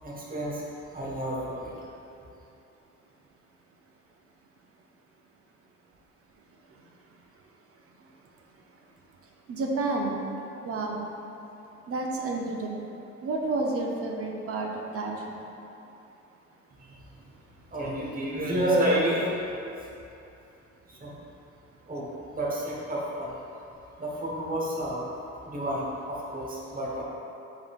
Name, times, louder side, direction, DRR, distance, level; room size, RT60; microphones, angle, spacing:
voice 1, 0.0-0.6 0.9-1.7 16.8-17.0 17.7-19.4 20.9-21.2 21.9-23.4 24.0-25.1 25.4-27.0, right 1 dB, 30° right, -4 dB, 0.9 m, -30 dB
voice 2, 9.5-10.2 10.6-11.0 11.9-12.8 13.2-15.4, right 2 dB, 50° right, 0 dB, 0.6 m, -30 dB
5.0 x 3.7 x 2.3 m, 2.9 s
cardioid pair, 90°, 30 cm